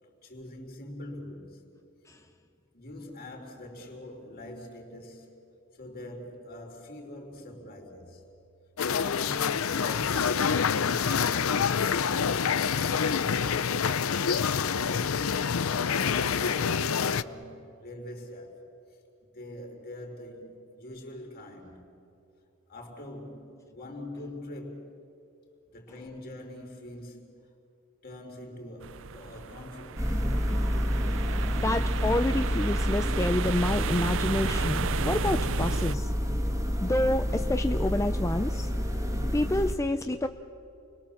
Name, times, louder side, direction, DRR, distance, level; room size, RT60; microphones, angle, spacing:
voice 1, 0.2-1.6 2.7-5.3 5.7-8.3 8.9-13.9 14.5-18.7 19.3-21.9 22.7-24.9 25.7-27.4 28.0-30.2, left 1 dB, 45° left, 4.1 m, -44 dB
sound 1, 8.8-17.2, left 6 dB, 70° left, 0.6 m, -27 dB
sound 2, 28.8-36.0, right 7 dB, 65° right, 0.6 m, -35 dB
sound 3, 30.0-39.7, equal, 15° right, 2.1 m, -29 dB
voice 2, 31.5-36.1 36.8-38.7 39.3-40.3, left 1 dB, 15° left, 0.5 m, -28 dB
29.5 x 21.5 x 7.3 m
head